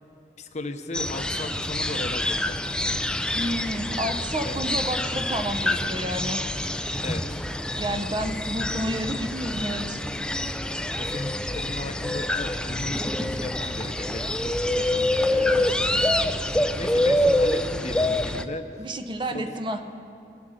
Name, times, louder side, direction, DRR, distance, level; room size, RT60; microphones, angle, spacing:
voice 1, 0.4-2.6 4.4-4.8 7.0-7.3 11.0-16.3 16.7-18.7 19.3-19.6, left 2 dB, 40° left, 8 dB, 0.8 m, -37 dB
sound 1, 0.9-18.4, left 1 dB, 5° left, 0.4 m, -26 dB
voice 2, 3.3-6.4 7.8-10.0 18.8-19.8, equal, 25° right, 7 dB, 0.7 m, -30 dB
22.0 x 8.0 x 6.4 m, 2.6 s
head